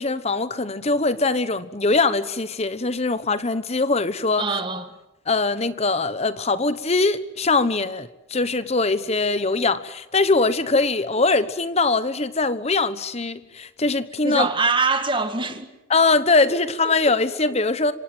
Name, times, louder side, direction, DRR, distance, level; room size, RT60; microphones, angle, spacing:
voice 1, 0.0-4.5 5.3-14.5 15.9-17.9, left 3 dB, 30° left, 1.1 m, -22 dB
voice 2, 4.4-4.8 14.2-15.7 16.9-17.0, right 4 dB, 25° right, 1.9 m, -23 dB
26.5 x 25.5 x 7.9 m
head